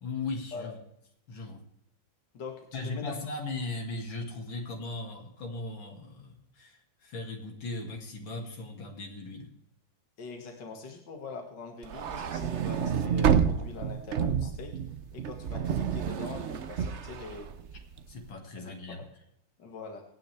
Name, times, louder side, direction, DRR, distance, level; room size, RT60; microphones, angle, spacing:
voice 1, 0.0-0.8 1.3-1.6 2.7-9.5 18.1-19.0, left 3 dB, 80° left, 2 dB, 3.0 m, -38 dB
voice 2, 2.3-3.1 10.2-14.7 15.1-17.5 18.6-19.1 19.6-20.0, left 4 dB, 65° left, 2 dB, 2.5 m, -43 dB
sound 1, 11.8-18.1, right 7 dB, 55° right, 0.8 m, -29 dB
25.0 x 9.4 x 3.4 m, 0.79 s
omnidirectional pair, 2.1 m